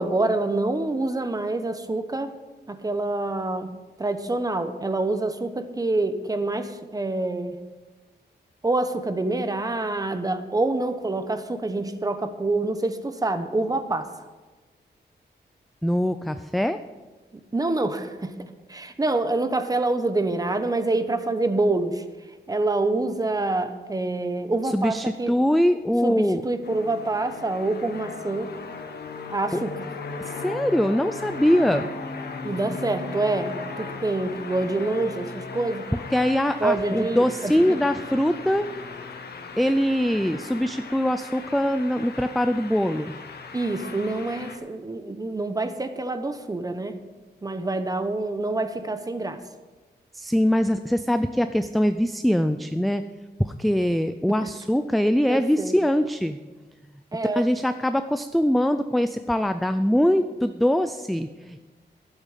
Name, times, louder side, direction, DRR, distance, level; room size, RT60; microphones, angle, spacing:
voice 1, 0.0-2.3 2.7-3.7 4.0-7.6 8.6-14.1 17.5-18.3 18.7-22.0 22.5-25.3 26.0-28.5 29.3-29.7 32.4-35.9 36.6-37.8 43.5-47.0 47.4-49.4 54.3-54.4 55.3-55.7 57.1-57.4, right 2 dB, 20° right, 9 dB, 1.0 m, -26 dB
voice 2, 15.8-16.8 24.6-26.4 29.5-29.6 30.2-31.9 35.9-38.7 39.6-43.2 50.1-53.0 53.4-56.4 57.3-61.6, equal, ahead, 10 dB, 0.4 m, -23 dB
sound 1, 26.6-44.6, left 4 dB, 65° left, 1.4 m, -37 dB
12.0 x 8.2 x 7.4 m, 1.3 s
wide cardioid pair, 125°, 18 cm